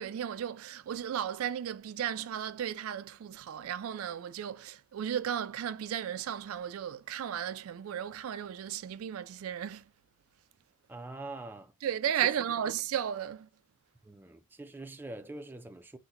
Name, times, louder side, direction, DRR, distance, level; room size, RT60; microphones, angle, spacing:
voice 1, 0.0-9.8 11.8-13.5, right 9 dB, 80° right, 0.3 m, -34 dB
voice 2, 10.9-11.7 12.2-12.3 12.6-12.7 14.0-16.0, right 2 dB, 10° right, 0.3 m, -44 dB
3.8 x 2.1 x 2.8 m
head